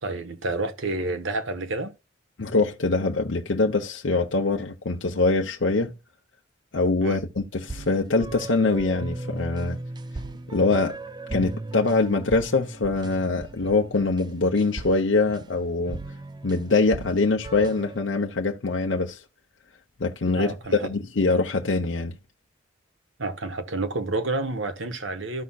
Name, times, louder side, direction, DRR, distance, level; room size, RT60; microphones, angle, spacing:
voice 1, 0.0-1.9 7.0-7.2 20.3-20.9 23.2-25.4, right 2 dB, 85° right, 1.2 m, -29 dB
voice 2, 2.4-5.9 6.7-9.8 10.5-11.0 11.3-16.0 16.4-19.2 20.0-22.2, left 3 dB, 75° left, 0.8 m, -23 dB
sound 1, 7.6-18.0, right 2 dB, 20° right, 0.4 m, -37 dB
13.5 x 5.6 x 2.4 m
head